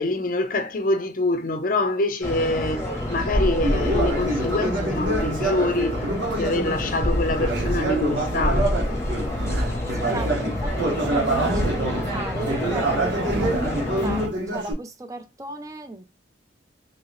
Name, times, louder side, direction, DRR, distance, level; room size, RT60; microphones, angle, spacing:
voice 1, 0.0-6.1 6.3-8.7, left 2 dB, 45° left, 0.5 m, -25 dB
sound 1, 2.2-14.3, left 1 dB, 15° left, 0.8 m, -27 dB
Conversation, 3.6-9.4 9.8-14.7, right 2 dB, 90° right, 1.1 m, -27 dB
sound 2, 7.2-8.1 9.1-10.0 11.1-12.0 12.9-13.8, right 1 dB, 75° right, 0.7 m, -32 dB
voice 2, 9.9-16.0, right 2 dB, 20° right, 0.5 m, -36 dB
2.8 x 2.8 x 3.1 m
head